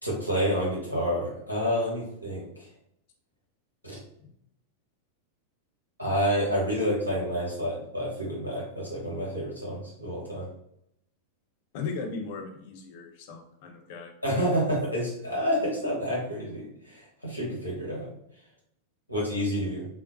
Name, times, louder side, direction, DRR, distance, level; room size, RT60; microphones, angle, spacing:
voice 1, 0.0-2.5 3.8-4.0 6.0-10.5 14.2-18.1 19.1-19.9, equal, 90° right, -4 dB, 1.0 m, -29 dB
voice 2, 11.7-14.1, left 4 dB, 50° left, 2 dB, 0.6 m, -37 dB
3.6 x 2.2 x 2.6 m, 0.76 s
figure-of-eight pair, 90°, 0 cm